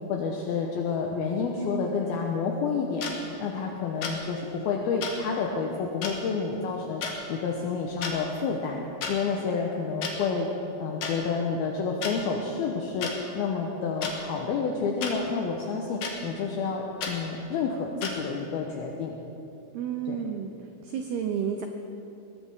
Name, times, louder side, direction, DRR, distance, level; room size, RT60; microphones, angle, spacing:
voice 1, 0.1-3.1 3.4-7.0 7.3-10.5 10.8-19.1 20.1-20.2, left 5 dB, 75° left, 0 dB, 2.3 m, -29 dB
sound 1, 3.0-3.1 4.0-4.2 5.0-5.1 6.0-6.1 7.0-7.2 7.9-8.1 9.0-9.1 10.0-10.1 11.0-11.1 12.0-12.1 13.0-13.1 14.0-14.1 15.0-15.1 16.0-16.1 17.0-17.1 18.0-18.1, left 6 dB, 60° left, 3.0 m, -32 dB
voice 2, 19.7-20.5 20.8-21.7, right 8 dB, 85° right, 5 dB, 2.2 m, -31 dB
22.0 x 17.0 x 3.6 m, 2.9 s
omnidirectional pair, 5.6 m